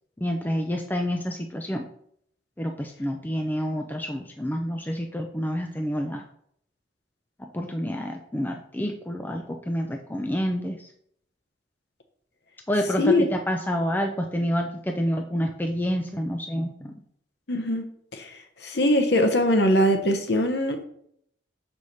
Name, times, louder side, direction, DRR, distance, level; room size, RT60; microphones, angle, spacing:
voice 1, 0.2-1.9 2.6-6.2 7.4-10.9 12.7-16.9, equal, 10° left, 3 dB, 0.4 m, -28 dB
voice 2, 17.5-17.8 18.1-20.8, left 1 dB, 55° left, 5 dB, 0.9 m, -22 dB
6.4 x 4.8 x 4.2 m, 0.68 s
head